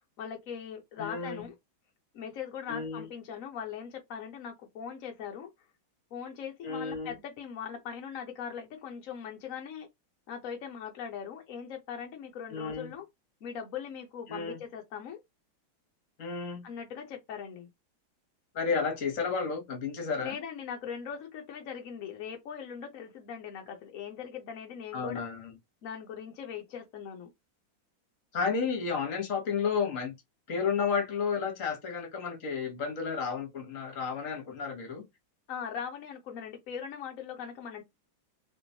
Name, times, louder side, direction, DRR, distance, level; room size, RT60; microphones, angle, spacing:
voice 1, 0.2-1.6 2.1-5.5 6.1-9.9 10.3-13.0 13.4-15.2 16.6-17.7 20.2-25.2 25.8-27.3 35.5-37.8, left 7 dB, 70° left, 0.7 m, -40 dB
voice 2, 1.0-1.4 2.7-3.1 6.6-7.1 12.5-12.9 14.3-14.6 16.2-16.6 18.5-20.4 24.9-25.5 28.3-30.1 30.5-35.0, left 5 dB, 45° left, 1.3 m, -32 dB
3.4 x 3.0 x 2.7 m
omnidirectional pair, 2.2 m